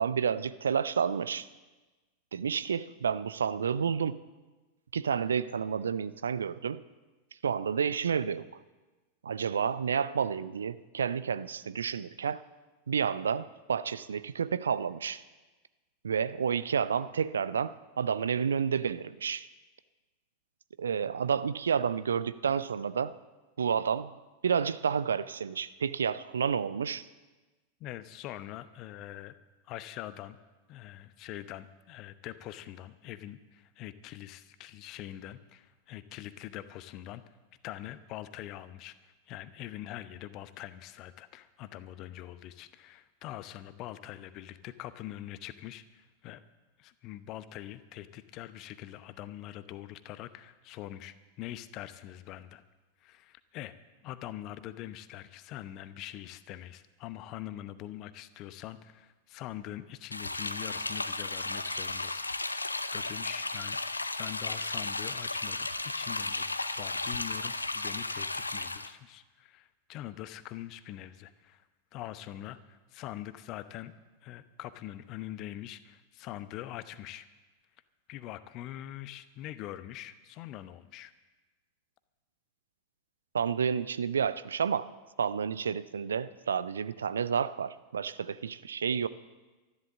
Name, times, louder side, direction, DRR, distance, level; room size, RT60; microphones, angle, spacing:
voice 1, 0.0-1.5 2.3-4.2 4.9-6.8 7.4-8.5 9.2-12.4 12.9-15.2 16.0-19.5 20.8-23.1 23.6-24.2 24.4-27.1 83.3-84.9 85.2-89.1, right 7 dB, 70° right, 0.5 m, -30 dB
voice 2, 27.8-29.3 29.6-30.4 30.7-37.2 37.6-46.4 46.8-52.6 53.0-53.7 54.0-71.7 71.9-73.9 74.2-77.3 78.1-81.1, left 13 dB, 40° left, 0.8 m, -44 dB
sound 1, 60.1-68.9, left 2 dB, 80° left, 0.6 m, -34 dB
13.0 x 11.5 x 7.4 m
figure-of-eight pair, 90°, 0 cm